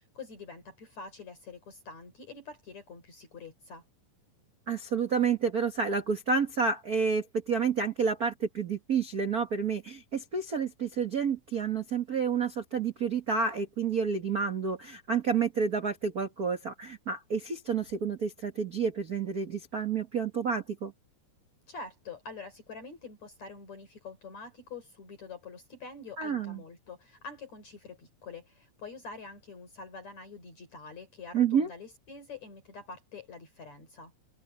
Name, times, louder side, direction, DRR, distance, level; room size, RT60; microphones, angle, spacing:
voice 1, 0.1-3.8 21.7-34.1, left 4 dB, 50° left, 5.1 m, -46 dB
voice 2, 4.7-20.9 26.2-26.6 31.3-31.7, right 6 dB, 80° right, 0.8 m, -29 dB
omnidirectional pair, 4.3 m